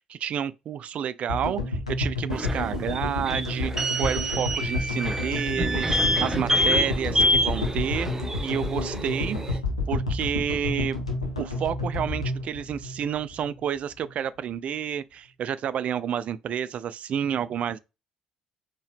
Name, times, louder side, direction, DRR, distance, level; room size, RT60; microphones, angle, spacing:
voice 1, 0.0-3.7 4.0-8.1 8.4-9.4 9.9-11.0 11.4-17.8, right 8 dB, 45° right, 0.3 m, -30 dB
sound 1, 1.3-13.6, left 2 dB, 90° left, 0.8 m, -30 dB
sound 2, 2.3-9.6, equal, 15° right, 0.7 m, -27 dB
4.4 x 2.9 x 3.4 m
figure-of-eight pair, 50°, 3 cm